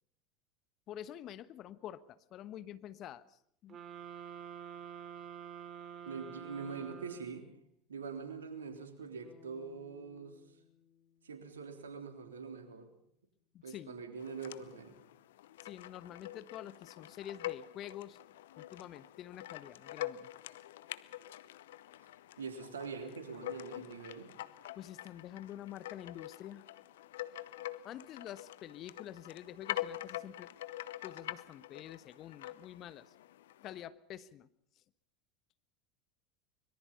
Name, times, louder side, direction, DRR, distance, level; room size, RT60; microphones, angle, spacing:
voice 1, 0.9-3.8 13.5-14.0 15.6-18.2 18.6-20.3 24.7-26.7 27.8-30.5 31.0-33.1 33.6-34.5, left 11 dB, 45° left, 15 dB, 1.2 m, -47 dB
sound 1, 3.7-7.6, right 8 dB, 35° right, 2.8 m, -48 dB
voice 2, 6.0-7.5 7.9-10.4 11.2-12.9 13.6-15.0 22.4-24.3, right 5 dB, 80° right, 6 dB, 3.5 m, -44 dB
sound 2, 9.2-13.3, left 7 dB, 15° left, 5.5 m, -64 dB
sound 3, 14.2-33.9, left 14 dB, 70° left, 0.8 m, -45 dB
24.5 x 22.5 x 5.5 m, 0.68 s
figure-of-eight pair, 75°, 0 cm